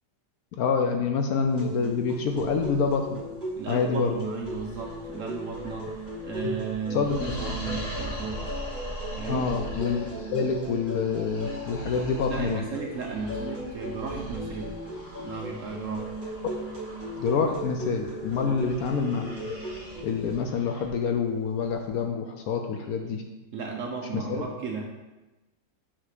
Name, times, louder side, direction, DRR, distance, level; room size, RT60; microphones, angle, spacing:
voice 1, 0.6-3.2 3.7-4.1 6.4-6.5 6.9-7.2 9.3-12.6 17.2-19.6 20.0-23.2 24.3-24.4, left 5 dB, 70° left, 4 dB, 1.0 m, -27 dB
sound 1, 1.5-20.4, equal, 30° right, 1.6 m, -38 dB
sound 2, 2.4-22.0, right 1 dB, 30° left, 0.8 m, -41 dB
voice 2, 3.6-5.9 6.2-8.4 9.2-9.5 12.3-14.8 15.2-16.2 18.4-18.6 22.8-22.9 23.5-24.9, right 4 dB, 60° right, 0 dB, 0.9 m, -35 dB
7.4 x 3.0 x 4.9 m, 1.1 s
omnidirectional pair, 1.8 m